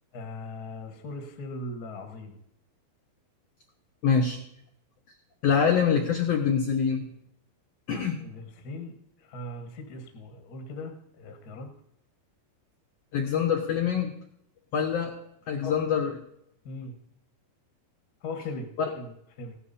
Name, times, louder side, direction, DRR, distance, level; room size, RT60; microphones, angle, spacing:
voice 1, 0.1-2.4 8.2-11.7 15.6-15.7 16.6-17.0 18.2-19.6, left 2 dB, 60° left, 5 dB, 0.9 m, -39 dB
voice 2, 4.0-4.4 5.4-7.1 7.9-8.2 13.1-14.1 14.7-15.1 15.5-16.1, left 7 dB, 85° left, 3 dB, 1.4 m, -25 dB
16.0 x 11.0 x 4.2 m, 0.76 s
omnidirectional pair, 4.4 m